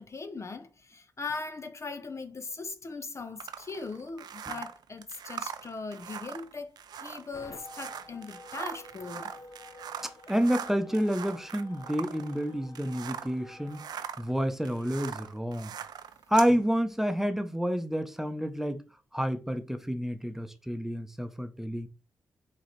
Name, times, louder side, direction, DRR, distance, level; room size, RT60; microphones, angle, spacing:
voice 1, 0.0-9.3, left 4 dB, 40° left, 0.6 m, -40 dB
sound 1, 3.4-13.4 13.7-16.5, right 8 dB, 70° right, 0.4 m, -41 dB
sound 2, 7.3-13.9, left 2 dB, 55° left, 1.0 m, -50 dB
voice 2, 10.0-13.8 14.2-15.7 16.3-18.8 19.1-21.9, equal, 5° right, 0.8 m, -29 dB
4.7 x 3.1 x 3.2 m
supercardioid pair, 40°, 7 cm